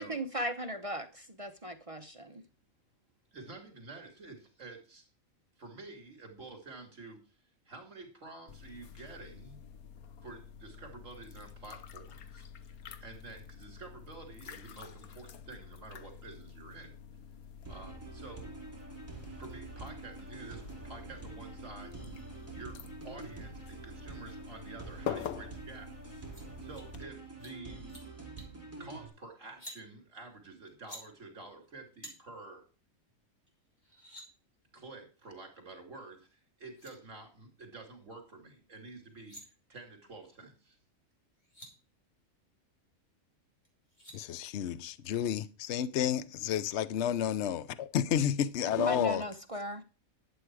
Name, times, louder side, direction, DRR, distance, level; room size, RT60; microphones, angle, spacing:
voice 1, 0.0-2.4 48.8-49.8, right 1 dB, 30° right, 0.8 m, -37 dB
voice 2, 3.3-5.1 5.6-7.2 7.7-9.6 10.2-12.5 13.0-16.9 17.7-18.5 19.4-22.0 22.5-25.9 26.6-27.8 28.8-32.6 34.7-40.8, right 3 dB, 60° right, 3.5 m, -49 dB
sound 1, 8.5-27.0, left 8 dB, 85° left, 1.4 m, -47 dB
sound 2, 17.7-29.1, right 4 dB, 10° right, 4.0 m, -47 dB
sound 3, 26.3-26.4 26.7-26.9 27.3-27.5 27.8-28.0 28.4-28.6 29.5-29.8 30.7-31.0 32.0-32.1 33.5-33.6 33.8-34.3 36.3-36.4 36.7-36.9 39.0-39.4 41.1-41.2 41.4-41.7 43.6-44.2, equal, 30° left, 4.1 m, -49 dB
voice 3, 44.1-49.2, left 9 dB, 60° left, 1.0 m, -31 dB
12.0 x 8.3 x 4.8 m
omnidirectional pair, 1.5 m